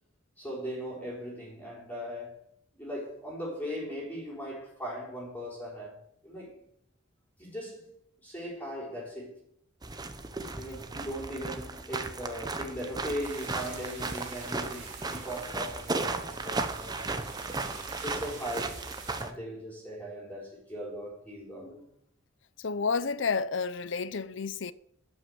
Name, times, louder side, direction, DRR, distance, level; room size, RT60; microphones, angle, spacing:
voice 1, 0.4-2.4 2.7-6.6 7.4-7.9 8.2-9.4 10.5-17.4 18.0-18.9 19.2-21.9, equal, 10° left, 4.0 m, -39 dB
sound 1, 9.8-19.3, right 3 dB, 20° right, 0.9 m, -35 dB
sound 2, 13.2-19.2, right 5 dB, 55° right, 3.4 m, -47 dB
voice 2, 22.6-24.7, left 5 dB, 65° left, 0.6 m, -30 dB
12.0 x 6.1 x 7.8 m
head